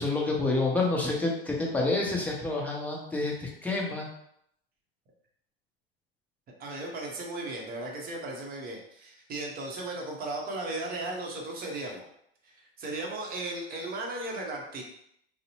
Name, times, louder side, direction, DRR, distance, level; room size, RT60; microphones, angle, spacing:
voice 1, 0.0-4.1, left 2 dB, 5° left, -3 dB, 0.6 m, -28 dB
voice 2, 6.6-12.1 12.4-14.8, right 2 dB, 30° right, 0 dB, 0.7 m, -36 dB
2.6 x 2.0 x 2.9 m, 0.73 s
hypercardioid pair, 100°, 30 cm